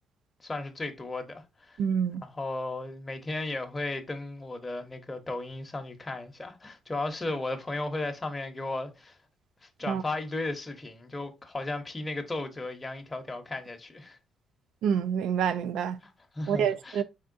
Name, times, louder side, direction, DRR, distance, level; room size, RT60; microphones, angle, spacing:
voice 1, 0.4-1.8 2.2-9.2 9.6-14.2 16.0-17.0, left 2 dB, 20° left, 0.7 m, -35 dB
voice 2, 1.8-2.2 9.9-10.0 14.8-16.0 16.5-17.0, right 7 dB, 85° right, 0.3 m, -27 dB
4.3 x 3.6 x 2.5 m
cardioid pair, 90°, 0 cm